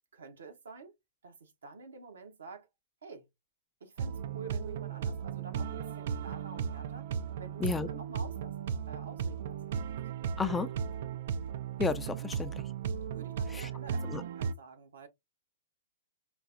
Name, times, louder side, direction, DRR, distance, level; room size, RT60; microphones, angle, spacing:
voice 1, 0.1-0.9 1.2-2.7 3.0-3.3 3.8-7.1 7.4-10.0 12.2-12.4 13.1-15.1, right 4 dB, 80° right, 1.0 m, -49 dB
sound 1, 4.0-14.5, right 7 dB, 60° right, 0.4 m, -36 dB
voice 2, 10.4-10.7 11.8-12.5 13.5-13.7 14.1-14.2, left 5 dB, 15° left, 0.4 m, -32 dB
5.0 x 2.0 x 2.5 m
hypercardioid pair, 120°, 0 cm